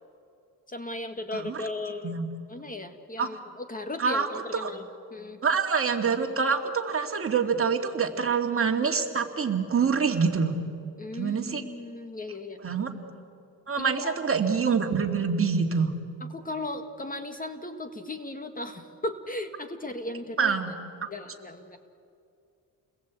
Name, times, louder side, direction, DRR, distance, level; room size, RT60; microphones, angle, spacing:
voice 1, 0.7-2.2 2.5-5.4 11.0-12.6 13.8-14.1 16.3-20.6 21.1-21.8, left 2 dB, 20° left, 7 dB, 1.7 m, -36 dB
voice 2, 1.3-1.7 2.0-2.3 3.2-3.3 4.0-4.3 4.6-4.7 5.4-10.5 11.1-11.6 12.6-12.9 13.7-15.9 20.4-20.7, right 5 dB, 35° right, 4 dB, 2.3 m, -26 dB
29.5 x 21.0 x 8.3 m, 2.5 s
cardioid pair, 110°, 38 cm